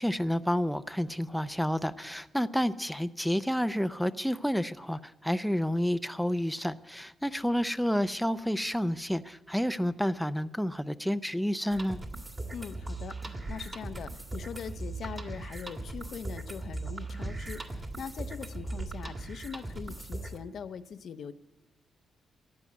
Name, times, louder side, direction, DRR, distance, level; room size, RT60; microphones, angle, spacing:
voice 1, 0.0-12.0, equal, ahead, 11 dB, 0.5 m, -30 dB
sound 1, 11.7-20.4, right 2 dB, 25° right, 1.9 m, -39 dB
voice 2, 12.5-21.3, left 7 dB, 65° left, 11 dB, 0.7 m, -42 dB
14.5 x 9.7 x 8.1 m, 1.1 s
cardioid pair, 100°, 0 cm